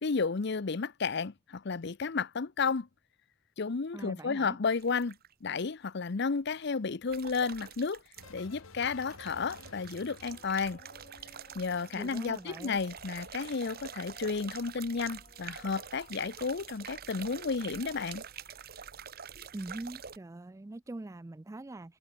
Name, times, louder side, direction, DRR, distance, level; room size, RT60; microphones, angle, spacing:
voice 1, 0.0-2.9 3.6-8.0 8.3-10.8 11.5-18.2, left 4 dB, 55° left, 0.6 m, -32 dB
voice 2, 3.9-4.6 11.9-12.8 19.5-22.0, right 2 dB, 15° right, 0.3 m, -43 dB
sound 1, 4.7-5.3 7.1-8.5 8.8-20.2, right 7 dB, 45° right, 1.2 m, -47 dB
sound 2, 8.2-12.6 12.8-13.4, left 3 dB, 90° left, 1.8 m, -54 dB
sound 3, 10.2-18.9, left 2 dB, 35° left, 3.4 m, -60 dB
head